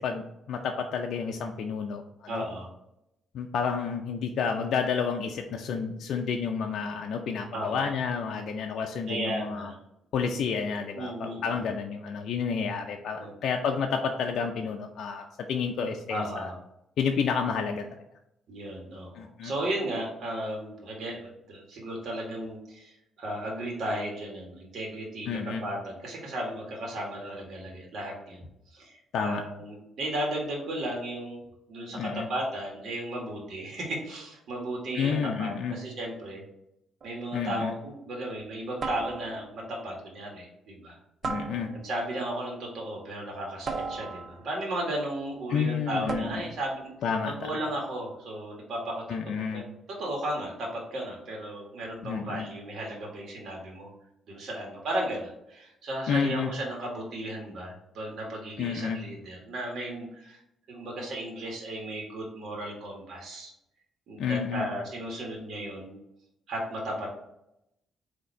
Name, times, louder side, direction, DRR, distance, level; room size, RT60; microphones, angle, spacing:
voice 1, 0.0-2.4 3.3-9.7 10.1-16.5 17.0-17.8 19.2-19.5 25.3-25.6 29.1-29.4 31.9-32.3 34.9-35.8 37.3-37.7 41.2-41.7 45.5-46.4 47.0-47.5 49.1-49.6 52.0-52.5 56.1-56.5 58.6-59.0 64.2-64.7, left 6 dB, 70° left, 3 dB, 0.4 m, -30 dB
voice 2, 2.3-2.7 7.5-7.9 9.1-9.7 10.9-11.7 13.2-13.3 16.1-16.5 18.5-28.4 28.7-31.4 31.7-35.1 35.4-36.4 37.0-41.0 41.7-46.9 47.4-49.6 49.9-53.9 54.3-60.4 60.7-63.5 64.1-66.0 66.5-67.1, right 1 dB, 65° right, -2 dB, 1.5 m, -35 dB
sound 1, 37.0-37.3 38.8-39.6 41.2-42.1 43.7-44.6 46.1-46.7, right 4 dB, 50° right, 0.6 m, -36 dB
4.1 x 2.8 x 4.5 m, 0.83 s
cardioid pair, 90°, 0 cm